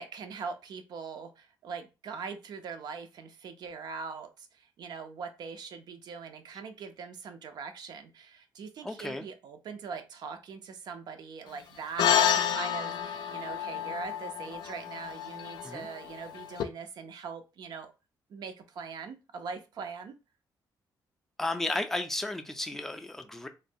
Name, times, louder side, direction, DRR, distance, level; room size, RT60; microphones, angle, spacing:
voice 1, 0.0-17.9 18.3-20.2, right 5 dB, 65° right, 0.5 m, -42 dB
voice 2, 8.8-9.2 15.6-15.9 21.4-23.5, left 2 dB, 5° left, 0.4 m, -33 dB
sound 1, 12.0-16.6, left 8 dB, 75° left, 0.3 m, -29 dB
3.1 x 2.1 x 2.6 m
cardioid pair, 110°, 8 cm